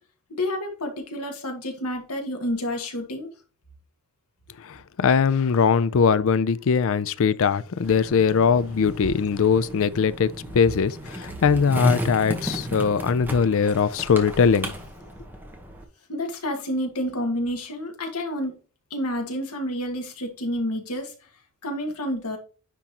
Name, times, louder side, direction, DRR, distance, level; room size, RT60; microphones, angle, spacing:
voice 1, 0.4-3.3 16.1-18.5 18.9-21.1 21.6-22.4, left 1 dB, 90° left, 1.7 m, -29 dB
voice 2, 4.6-14.7, left 6 dB, 65° left, 0.4 m, -21 dB
Skateboard, 7.8-15.8, equal, 10° right, 1.1 m, -34 dB
9.8 x 3.7 x 2.9 m
head